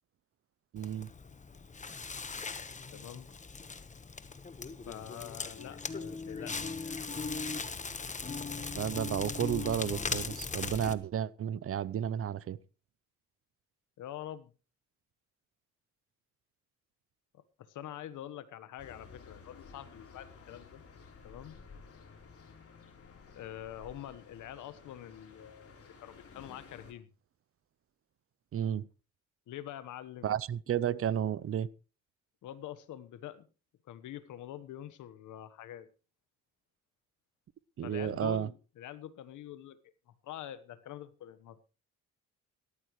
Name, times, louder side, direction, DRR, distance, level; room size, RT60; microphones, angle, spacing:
voice 1, 0.7-1.1 8.7-12.6 28.5-28.9 30.2-31.7 37.8-38.5, right 9 dB, 50° right, 0.6 m, -32 dB
Crackle, 0.8-10.9, left 4 dB, 25° left, 1.2 m, -39 dB
voice 2, 2.9-3.3 4.9-7.0 14.0-14.5 17.3-20.8 21.2-21.6 23.3-27.1 29.5-30.4 32.4-33.5 33.9-35.9 37.8-39.8 40.2-41.6, left 11 dB, 80° left, 1.3 m, -45 dB
sound 1, 18.8-26.9, left 5 dB, 50° left, 3.9 m, -54 dB
17.5 x 13.5 x 3.2 m
cardioid pair, 90°, 30 cm